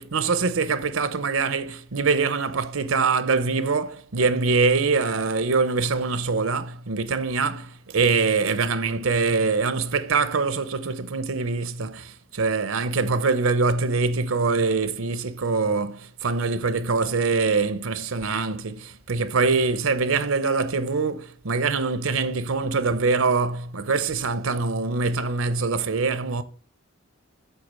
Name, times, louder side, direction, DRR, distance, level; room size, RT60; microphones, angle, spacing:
voice 1, 0.0-26.4, right 4 dB, 85° right, 0.8 m, -24 dB
8.4 x 3.8 x 6.3 m
head